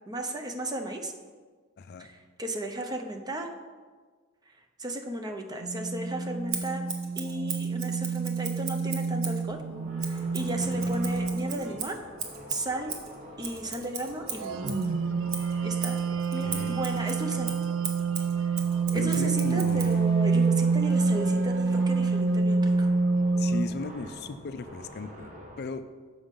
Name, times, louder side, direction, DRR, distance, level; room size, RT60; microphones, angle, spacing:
voice 1, 0.1-1.1 2.0-3.5 4.8-6.9 7.2-9.6 10.1-12.0 12.5-12.9 13.4-14.7 15.6-16.1 16.3-17.5 18.9-22.9, right 1 dB, 20° right, 5 dB, 0.6 m, -35 dB
voice 2, 1.8-2.1 10.8-10.9 16.4-16.8 18.9-20.1 23.4-25.3 25.6-25.8, left 3 dB, 50° left, 10 dB, 0.4 m, -37 dB
sound 1, 5.6-11.7 14.4-23.7, right 4 dB, 65° right, 0.5 m, -27 dB
Scissors, 6.5-9.4 10.0-14.9 15.3-20.0, right 6 dB, 85° right, 1.1 m, -38 dB
sound 2, 9.4-25.6, equal, 35° right, 1.3 m, -47 dB
7.1 x 6.2 x 5.2 m, 1.5 s
head